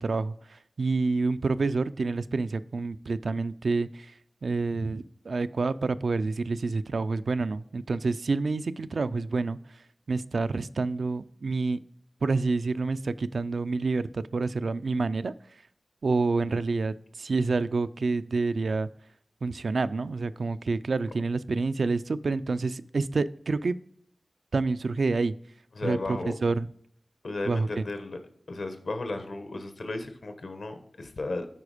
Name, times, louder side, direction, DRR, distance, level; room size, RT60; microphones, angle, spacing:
voice 1, 0.0-4.1 4.4-9.6 10.1-11.8 12.2-15.3 16.0-18.9 19.4-23.8 24.5-25.3 25.8-26.7 27.5-27.8, right 3 dB, 75° right, 13 dB, 0.3 m, -28 dB
voice 2, 25.7-26.3 27.2-28.2 28.5-31.5, left 2 dB, 75° left, 8 dB, 1.1 m, -34 dB
9.8 x 4.2 x 4.9 m, 0.68 s
wide cardioid pair, 75°, 0 cm